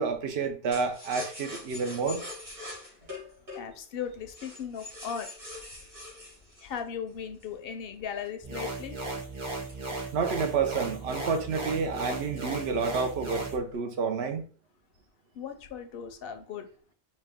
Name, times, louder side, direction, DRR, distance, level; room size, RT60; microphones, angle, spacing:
voice 1, 0.0-2.2 9.9-14.4, right 5 dB, 80° right, 0.9 m, -29 dB
sound 1, 0.7-7.6 8.2-10.6 11.0-11.1 11.4-11.7 12.2-12.9 13.2-13.8, left 2 dB, 55° right, 2.1 m, -44 dB
voice 2, 3.5-5.3 6.6-9.0 15.3-16.7, left 7 dB, 70° left, 0.7 m, -37 dB
sound 2, 8.4-13.6, right 2 dB, 30° right, 0.8 m, -36 dB
4.4 x 2.2 x 3.5 m
omnidirectional pair, 1.1 m